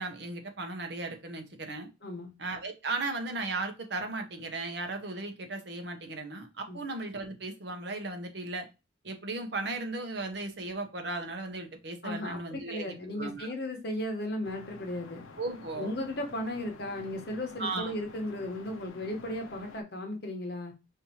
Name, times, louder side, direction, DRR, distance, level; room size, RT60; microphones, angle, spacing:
voice 1, 0.0-1.9 2.4-8.7 9.0-13.5 15.4-15.9 17.6-17.9, right 3 dB, 55° right, 0.8 m, -36 dB
voice 2, 2.0-2.3 6.7-6.8 12.0-15.2 15.8-20.7, left 1 dB, 55° left, 1.0 m, -35 dB
sound 1, 14.4-19.8, left 3 dB, 90° left, 0.6 m, -50 dB
5.2 x 2.8 x 2.9 m
head